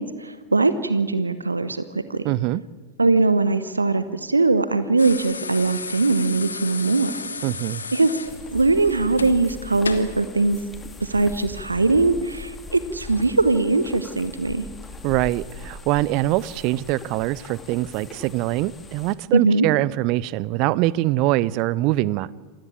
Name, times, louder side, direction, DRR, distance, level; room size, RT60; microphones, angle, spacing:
voice 1, 0.0-2.2 3.0-7.1 7.9-8.1 8.5-10.6 11.0-14.7 19.3-19.7, right 3 dB, 80° right, 13 dB, 1.0 m, -21 dB
voice 2, 2.2-2.6 7.4-7.8 15.0-22.3, right 17 dB, 40° right, 22 dB, 0.6 m, -23 dB
sound 1, 5.0-10.2 11.5-11.7, left 5 dB, 75° left, 1.6 m, -33 dB
sound 2, 8.2-19.1, left 3 dB, 15° left, 2.2 m, -40 dB
27.5 x 15.5 x 8.7 m, 1.4 s
figure-of-eight pair, 90°, 0 cm